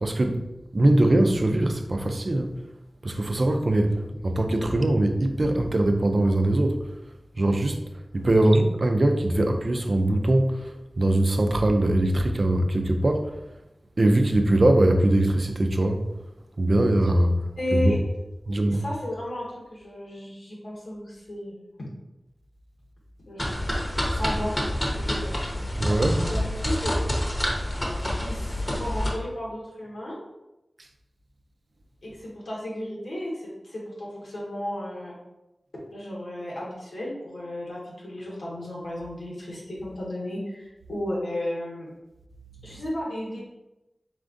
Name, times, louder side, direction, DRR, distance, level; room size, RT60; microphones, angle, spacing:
voice 1, 0.0-0.4 0.7-2.6 3.0-6.9 7.4-7.8 8.1-13.3 14.0-16.0 16.6-18.0 18.5-18.8 25.8-26.3 42.7-42.8, right 1 dB, 55° right, 5 dB, 0.4 m, -22 dB
voice 2, 17.6-18.0 18.5-21.6 23.3-23.5 24.1-24.6 24.9-25.4 26.3-27.0 27.6-27.7 28.2-30.2 32.0-35.2 35.7-41.9 42.6-43.4, left 1 dB, 90° left, -5 dB, 1.4 m, -34 dB
sound 1, 23.4-29.1, equal, 30° left, 0.9 m, -27 dB
4.3 x 3.6 x 2.5 m, 0.95 s
wide cardioid pair, 75°, 0 cm